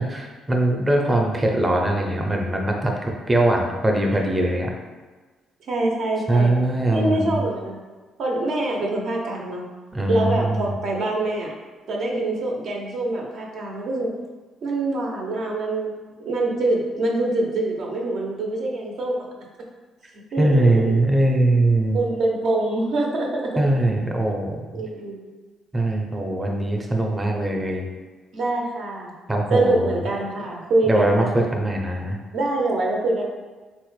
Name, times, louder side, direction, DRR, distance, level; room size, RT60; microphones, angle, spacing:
voice 1, 0.0-4.7 6.3-7.4 9.9-10.7 20.4-22.0 23.6-24.8 25.7-27.9 29.3-29.9 30.9-32.2, right 1 dB, 15° right, 1 dB, 0.5 m, -21 dB
voice 2, 5.7-6.5 6.9-7.8 8.2-9.6 10.1-11.5 11.9-14.1 14.6-15.9 16.2-19.2 20.3-21.0 21.9-23.5 24.7-25.2 28.3-29.1 29.5-31.3 32.3-33.2, right 2 dB, 65° right, -1 dB, 0.6 m, -24 dB
3.8 x 2.1 x 3.1 m, 1.3 s
cardioid pair, 110°, 0 cm